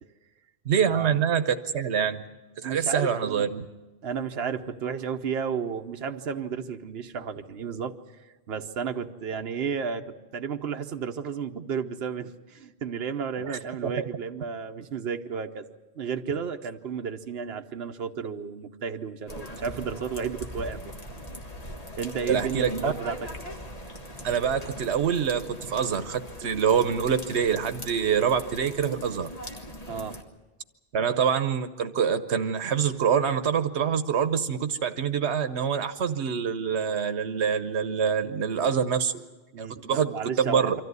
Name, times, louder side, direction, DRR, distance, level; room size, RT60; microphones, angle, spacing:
voice 1, 0.7-2.2 2.6-3.6 13.5-13.9 22.3-22.9 24.2-29.3 30.9-39.2 39.6-40.7, right 7 dB, 85° right, 10 dB, 1.2 m, -25 dB
voice 2, 2.6-3.5 4.0-8.0 8.5-15.7 15.9-20.9 22.0-23.3 29.9-30.2 39.5-40.7, right 6 dB, 70° right, 5 dB, 1.1 m, -32 dB
sound 1, 19.3-30.2, equal, 35° left, 1.8 m, -40 dB
24.5 x 14.0 x 9.5 m, 1.2 s
omnidirectional pair, 1.1 m